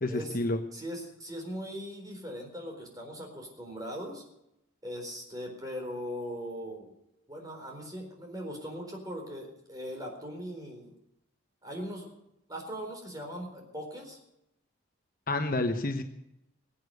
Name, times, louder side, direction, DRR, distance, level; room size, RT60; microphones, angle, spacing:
voice 1, 0.0-0.6 15.3-16.0, left 2 dB, 45° left, 6 dB, 1.0 m, -29 dB
voice 2, 0.7-4.2 4.8-6.9 7.3-10.9 11.6-12.1 12.5-14.2, equal, 15° right, 2 dB, 4.2 m, -39 dB
22.0 x 8.6 x 6.6 m, 0.84 s
head